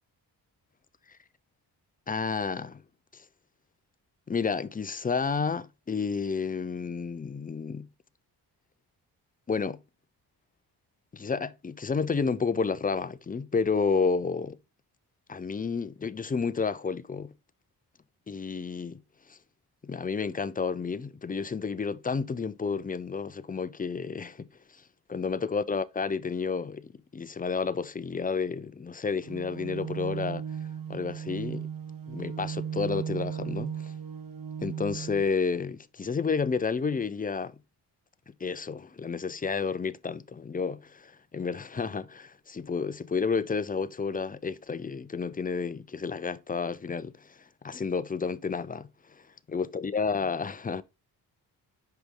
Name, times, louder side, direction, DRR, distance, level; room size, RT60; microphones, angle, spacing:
voice 1, 2.1-2.8 3.1-3.2 4.3-7.9 9.5-9.8 11.1-14.6 15.3-17.3 18.3-19.0 19.3-19.4 19.8-24.5 25.1-30.4 30.9-31.7 32.1-33.9 34.6-37.6 38.4-47.3 47.6-48.9 49.5-50.8, left 5 dB, 20° left, 0.5 m, -31 dB
sound 1, 29.2-35.2, right 8 dB, 55° right, 1.1 m, -36 dB
6.7 x 5.1 x 3.7 m
cardioid pair, 105°, 41 cm